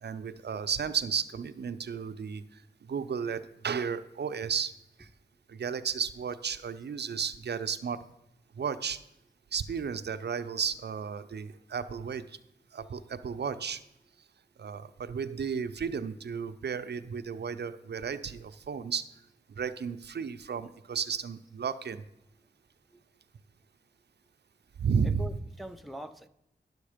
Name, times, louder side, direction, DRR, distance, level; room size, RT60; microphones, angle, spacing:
voice 1, 0.0-2.6 2.9-4.7 5.0-5.1 5.5-8.0 8.6-9.0 9.5-12.4 12.7-13.8 14.6-19.1 19.6-22.0 24.8-25.2, right 6 dB, 70° right, 11 dB, 0.5 m, -33 dB
voice 2, 14.5-15.0 22.3-22.5 22.9-23.2 25.0-26.3, equal, ahead, 8 dB, 0.6 m, -45 dB
11.0 x 6.4 x 5.0 m, 0.84 s
cardioid pair, 50°, 18 cm